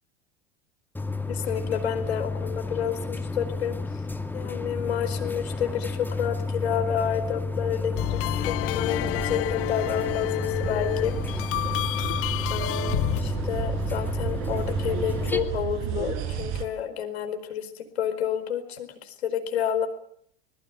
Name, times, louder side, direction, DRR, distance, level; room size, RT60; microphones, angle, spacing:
sound 1, 0.9-15.4, left 3 dB, 5° left, 2.4 m, -31 dB
voice 1, 1.3-4.0 4.3-11.4 12.5-19.9, left 8 dB, 80° left, 8 dB, 4.7 m, -30 dB
sound 2, 8.0-13.2, left 18 dB, 45° left, 0.9 m, -29 dB
sound 3, 8.9-16.6, right 9 dB, 55° right, 5.2 m, -33 dB
25.0 x 20.5 x 8.1 m, 0.64 s
hypercardioid pair, 85°, 32 cm